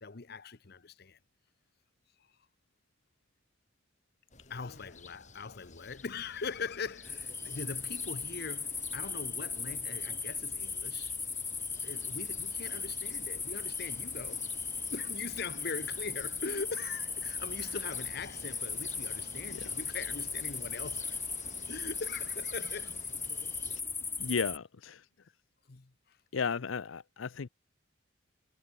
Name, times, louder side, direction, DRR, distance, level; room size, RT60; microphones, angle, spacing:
voice 1, 0.0-1.2 4.5-11.1 11.8-14.5 14.9-21.2 21.7-23.1 25.7-26.2, left 4 dB, 55° left, 0.9 m, -41 dB
sound 1, 4.3-23.8, left 3 dB, 40° left, 6.7 m, -53 dB
sound 2, 7.0-24.6, left 4 dB, 10° left, 1.2 m, -37 dB
voice 2, 24.2-25.0 26.3-27.5, left 5 dB, 90° left, 0.6 m, -34 dB
head